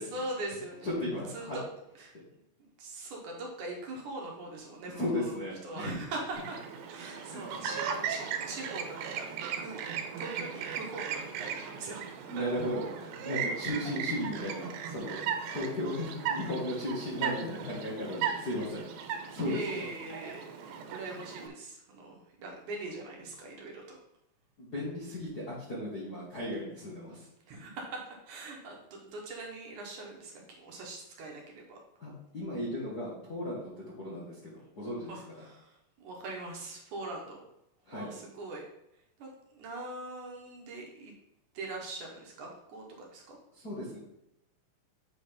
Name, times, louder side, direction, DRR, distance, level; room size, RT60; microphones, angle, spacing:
voice 1, 0.0-0.9 1.3-1.6 2.0-2.1 2.6-5.4 5.6-6.6 6.9-9.8 10.2-12.4 13.8-13.9 15.4-15.6 19.4-24.0 27.5-31.8 35.1-37.4 37.9-38.6 39.2-41.1 41.5-43.4, right 2 dB, 65° right, 0 dB, 2.3 m, -42 dB
voice 2, 0.8-1.6 2.1-2.2 5.0-5.9 7.0-7.7 12.3-15.3 15.5-18.8 19.3-19.8 24.6-27.3 32.0-35.4 37.8-38.1 43.5-44.0, left 1 dB, 45° left, -8 dB, 1.3 m, -36 dB
Chirp tweet, 6.3-21.5, right 7 dB, 85° right, 2.6 m, -37 dB
7.8 x 3.9 x 5.1 m, 0.82 s
omnidirectional pair, 4.1 m